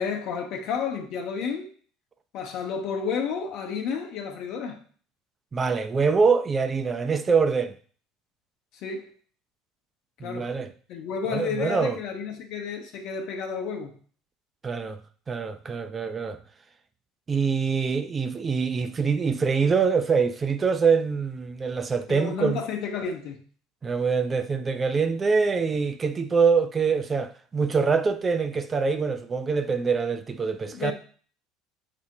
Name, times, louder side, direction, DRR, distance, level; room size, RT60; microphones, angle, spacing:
voice 1, 0.0-1.7 2.3-4.8 8.8-9.1 10.2-10.5 10.9-13.9 22.1-23.4 30.7-30.9, left 6 dB, 60° left, 0.8 m, -31 dB
voice 2, 5.5-7.7 10.2-10.7 11.3-12.0 14.6-15.0 15.3-16.4 17.3-22.6 23.8-30.9, right 5 dB, 30° right, 0.4 m, -24 dB
6.0 x 2.1 x 2.9 m
hypercardioid pair, 70°, 0 cm